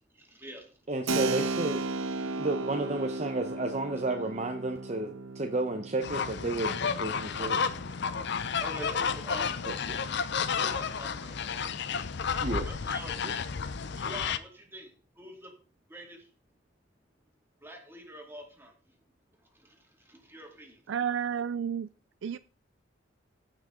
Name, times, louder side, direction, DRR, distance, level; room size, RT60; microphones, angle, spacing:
voice 1, 0.1-0.9 7.3-7.4 7.7-9.6 10.5-11.7 12.6-13.2 13.9-15.6 15.9-16.3 17.6-19.0 19.4-20.8, right 1 dB, 10° right, 2.3 m, -46 dB
voice 2, 0.9-1.8 2.4-7.6 9.7-10.0 12.4-12.7 13.2-13.3, right 2 dB, 35° right, 0.8 m, -32 dB
Keyboard (musical), 1.1-9.4, right 3 dB, 85° right, 0.8 m, -36 dB
sound 1, 6.0-14.4, left 6 dB, 60° left, 0.6 m, -31 dB
voice 3, 20.9-21.9 22.2-22.4, right 8 dB, 65° right, 0.4 m, -31 dB
15.5 x 6.1 x 3.8 m
head